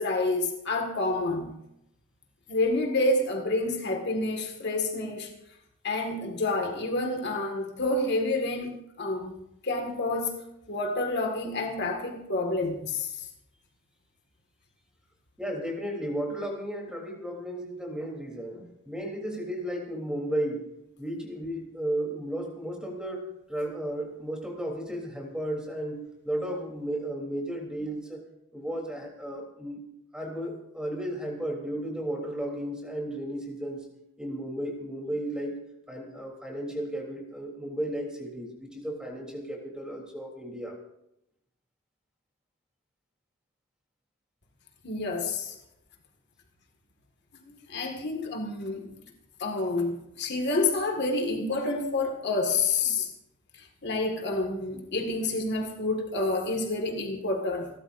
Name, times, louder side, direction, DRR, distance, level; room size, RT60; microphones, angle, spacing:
voice 1, 0.0-1.5 2.5-5.3 5.8-9.3 9.6-10.4 10.7-13.3 44.8-45.5 47.3-47.4 47.7-48.9 49.4-53.1 53.8-57.7, left 2 dB, 55° left, 2 dB, 1.9 m, -28 dB
voice 2, 15.4-20.7 21.0-28.2 28.5-29.8 30.1-33.8 34.2-35.5 35.9-40.8, right 1 dB, 5° right, -1 dB, 3.4 m, -34 dB
29.0 x 13.0 x 2.6 m, 0.82 s
head